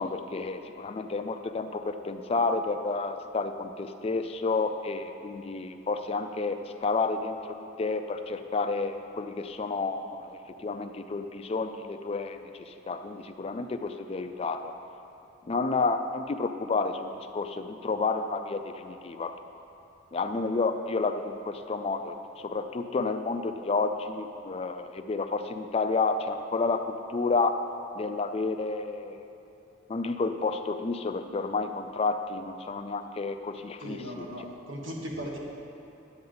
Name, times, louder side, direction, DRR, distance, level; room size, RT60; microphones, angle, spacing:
voice 1, 0.0-14.7 15.5-19.4 20.1-22.2 22.4-27.6 28.0-29.2 29.9-34.2, left 3 dB, 30° left, 8 dB, 0.3 m, -30 dB
voice 2, 33.8-35.4, equal, 75° right, -1 dB, 1.5 m, -37 dB
10.5 x 8.7 x 3.9 m, 2.8 s
head